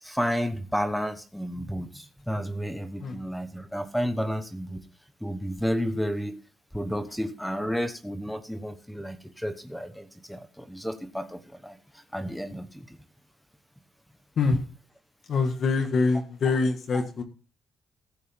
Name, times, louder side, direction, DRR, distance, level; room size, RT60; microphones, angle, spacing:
voice 1, 0.0-4.8 5.2-6.4 6.7-13.0 16.9-17.0, equal, ahead, 8 dB, 1.0 m, -31 dB
voice 2, 15.3-17.2, left 4 dB, 55° left, 4 dB, 1.6 m, -25 dB
15.5 x 8.5 x 3.6 m, 0.34 s
cardioid pair, 140°, 0 cm